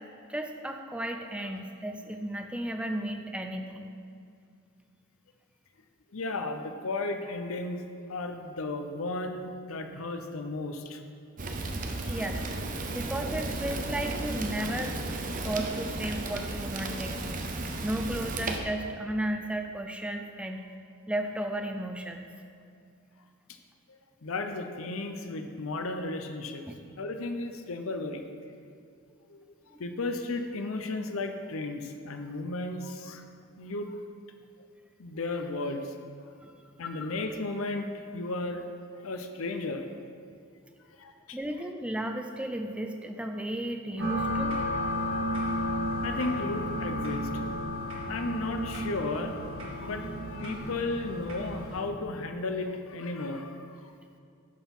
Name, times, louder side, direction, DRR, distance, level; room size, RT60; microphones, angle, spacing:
voice 1, 0.3-3.9 12.1-12.4 12.9-14.9 15.4-17.5 17.8-20.8 21.1-22.3 26.7-26.8 29.7-29.8 36.4-36.6 41.3-44.6, right 1 dB, 5° right, 4 dB, 0.4 m, -34 dB
voice 2, 6.1-7.8 8.1-11.0 12.0-12.2 23.9-26.7 27.0-28.2 29.3-29.5 29.8-33.2 33.6-33.9 35.0-35.8 36.8-38.6 39.0-39.9 41.0-41.4 46.0-47.3 48.0-49.4 49.8-53.9, left 2 dB, 65° left, 6 dB, 0.7 m, -34 dB
Fire, 11.4-18.6, right 2 dB, 40° right, 0.7 m, -34 dB
sound 1, 44.0-51.8, equal, 65° right, 1.9 m, -32 dB
11.5 x 4.5 x 5.4 m, 2.4 s
head